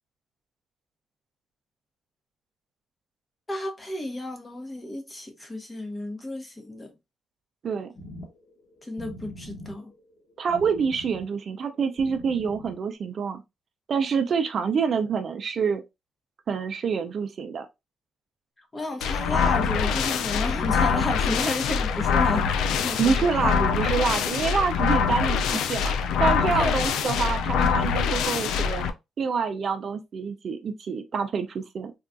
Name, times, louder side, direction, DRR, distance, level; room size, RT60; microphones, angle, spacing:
voice 1, 3.5-6.9 8.8-9.9 18.7-23.2 26.5-26.7, left 1 dB, 20° left, 0.8 m, -32 dB
sound 1, 8.0-12.9, left 1 dB, 45° left, 1.1 m, -43 dB
voice 2, 10.4-13.4 13.9-15.8 16.5-17.7 23.0-25.9 26.2-28.9 29.2-31.9, right 6 dB, 55° right, 0.4 m, -27 dB
sound 2, 19.0-28.9, left 6 dB, 85° left, 0.3 m, -24 dB
3.4 x 2.3 x 2.5 m
cardioid pair, 90°, 0 cm